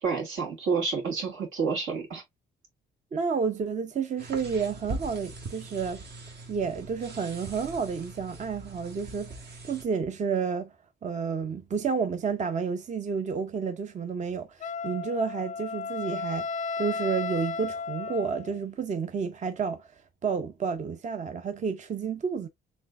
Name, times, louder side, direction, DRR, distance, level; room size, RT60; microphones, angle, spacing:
voice 1, 0.0-2.2, right 5 dB, 80° right, 2.3 m, -29 dB
voice 2, 3.1-6.0 6.5-10.7 11.0-16.5 16.8-19.9 20.2-22.5, right 5 dB, 35° right, 0.6 m, -30 dB
sound 1, 4.2-9.8, right 2 dB, 55° right, 1.3 m, -41 dB
Wind instrument woodwind instrument, 14.6-18.6, left 4 dB, 40° left, 0.4 m, -34 dB
4.2 x 3.4 x 2.5 m
cardioid pair, 90°, 20 cm